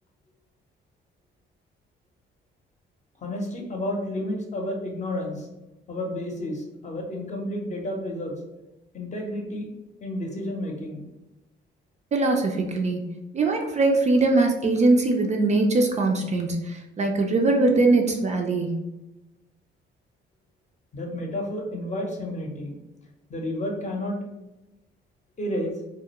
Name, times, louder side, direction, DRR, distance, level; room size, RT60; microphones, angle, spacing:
voice 1, 3.2-5.5 5.9-8.3 8.9-9.7 10.0-11.0 20.9-22.8 23.3-24.2 25.4-25.8, left 1 dB, 35° left, 1 dB, 0.7 m, -31 dB
voice 2, 12.1-13.0 13.3-18.8, right 2 dB, 35° right, 3 dB, 0.4 m, -22 dB
2.3 x 2.0 x 2.8 m, 1.0 s
cardioid pair, 90°, 20 cm